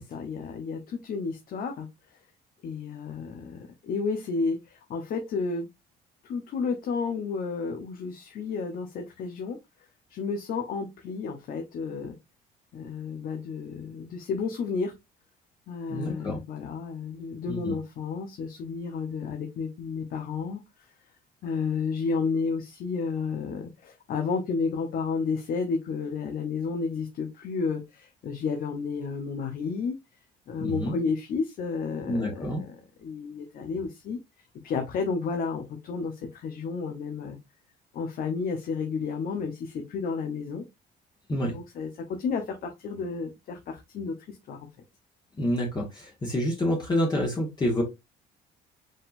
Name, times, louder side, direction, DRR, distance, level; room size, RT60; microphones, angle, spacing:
voice 1, 0.1-1.9 2.6-5.7 6.2-9.6 10.1-12.2 12.7-14.9 15.7-20.6 21.4-30.0 30.5-34.2 34.6-37.4 37.9-40.6 41.5-44.7, left 5 dB, 60° left, 0.9 m, -31 dB
voice 2, 15.9-16.4 17.5-17.8 30.6-31.0 32.1-32.6 41.3-41.6 45.4-47.8, left 1 dB, 25° left, 1.5 m, -28 dB
5.3 x 3.7 x 2.6 m
cardioid pair, 110°, 17 cm